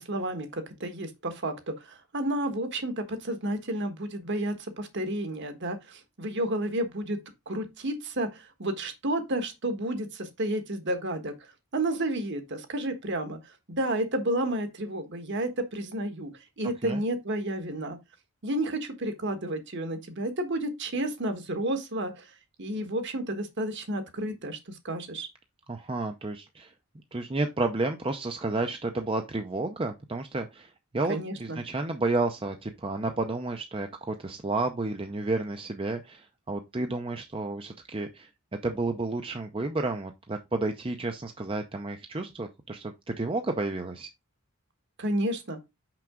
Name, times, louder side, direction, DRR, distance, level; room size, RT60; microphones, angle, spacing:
voice 1, 0.0-7.2 7.5-11.3 11.7-16.3 16.6-18.0 18.4-22.3 22.6-25.3 31.1-31.6 45.0-45.6, right 1 dB, 55° right, 1.4 m, -31 dB
voice 2, 25.7-26.7 27.1-38.3 38.6-44.1, right 2 dB, 25° right, 0.6 m, -31 dB
6.0 x 5.8 x 3.7 m
head